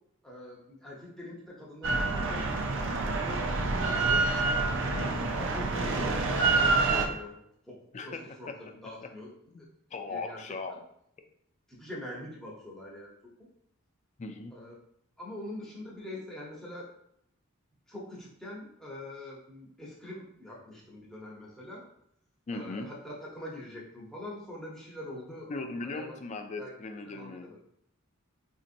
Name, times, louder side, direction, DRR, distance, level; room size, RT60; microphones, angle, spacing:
voice 1, 0.2-4.3 5.0-7.4 7.7-7.8 8.0-9.3 10.1-10.4 10.7-10.8 11.7-13.1 14.5-14.8 15.2-16.9 17.9-21.8 22.5-26.2 26.6-26.7 27.1-27.6, left 1 dB, ahead, -5 dB, 0.8 m, -43 dB
Drill, 1.8-7.1, right 3 dB, 60° right, 0.5 m, -27 dB
voice 2, 4.8-5.1 7.9-8.5 9.5-9.6 9.9-10.8 14.2-14.5 22.5-22.9 25.5-27.5, left 3 dB, 30° left, 6 dB, 0.3 m, -38 dB
4.1 x 2.7 x 2.5 m, 0.74 s
head